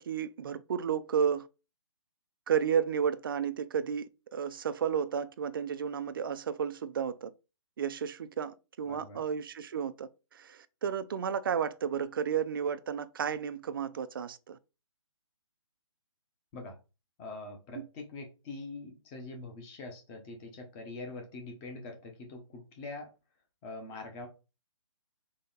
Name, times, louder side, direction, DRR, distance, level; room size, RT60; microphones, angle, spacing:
voice 1, 0.0-1.5 2.5-7.3 7.8-14.6 17.7-17.9, right 7 dB, 45° right, 0.4 m, -32 dB
voice 2, 8.9-9.3 16.5-16.8 17.2-23.1 23.6-24.3, left 3 dB, 15° left, 0.8 m, -44 dB
4.0 x 3.3 x 3.9 m
hypercardioid pair, 165°, 16 cm